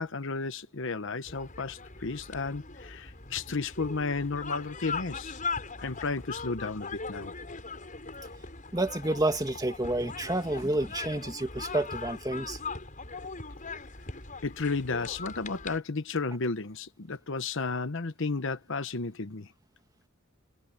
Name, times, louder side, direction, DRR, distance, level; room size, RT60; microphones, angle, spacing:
voice 1, 0.0-5.4 5.8-7.3 14.4-19.5, left 4 dB, 65° left, 1.0 m, -33 dB
sound 1, 1.3-15.8, left 4 dB, 40° left, 7.4 m, -40 dB
voice 2, 8.7-12.6, right 1 dB, 20° right, 2.5 m, -29 dB
head